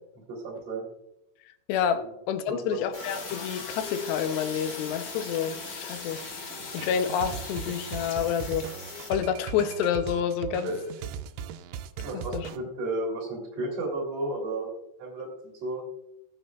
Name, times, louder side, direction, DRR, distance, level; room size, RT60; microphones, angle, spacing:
voice 1, 0.3-0.9 2.5-2.8 10.6-10.9 12.0-14.7 15.0-15.8, right 2 dB, 45° right, 3.8 m, -33 dB
voice 2, 1.7-2.0 2.3-6.2 6.7-8.7 9.1-10.7 12.1-12.5, left 8 dB, 85° left, 3.0 m, -28 dB
sound 1, 2.9-9.1, left 3 dB, 35° left, 1.4 m, -41 dB
sound 2, 3.1-8.1, left 5 dB, 60° left, 3.3 m, -42 dB
sound 3, 6.8-12.6, right 8 dB, 85° right, 2.7 m, -38 dB
19.0 x 7.2 x 2.4 m
omnidirectional pair, 4.8 m